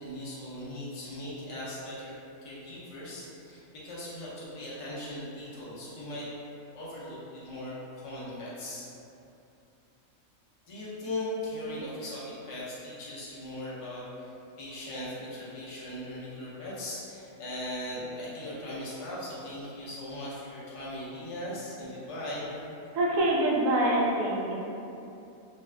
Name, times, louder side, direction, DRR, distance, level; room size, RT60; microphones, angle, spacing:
voice 1, 0.0-2.2 2.4-6.3 6.7-8.9 10.6-14.3 14.6-22.5, left 1 dB, 40° left, -8 dB, 0.4 m, -39 dB
voice 2, 22.9-24.5, right 1 dB, 75° right, -3 dB, 0.9 m, -25 dB
2.6 x 2.3 x 3.2 m, 2.8 s
omnidirectional pair, 1.5 m